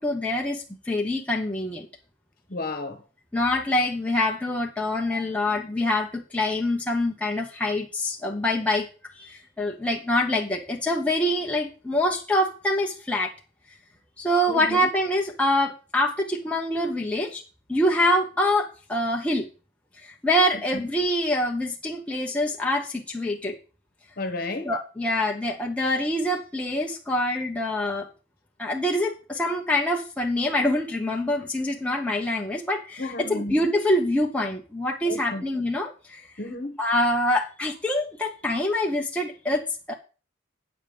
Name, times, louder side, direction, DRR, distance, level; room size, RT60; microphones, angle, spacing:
voice 1, 0.0-1.9 3.3-8.9 9.2-13.3 14.2-17.4 17.7-19.5 20.0-23.6 24.6-28.1 28.6-36.2 36.8-39.9, left 1 dB, 5° left, 1.0 m, -25 dB
voice 2, 2.5-3.0 14.5-14.9 20.7-20.8 24.2-24.7 33.0-33.6 35.0-35.4 36.4-36.8, left 2 dB, 45° left, 1.4 m, -32 dB
9.1 x 7.2 x 5.1 m
head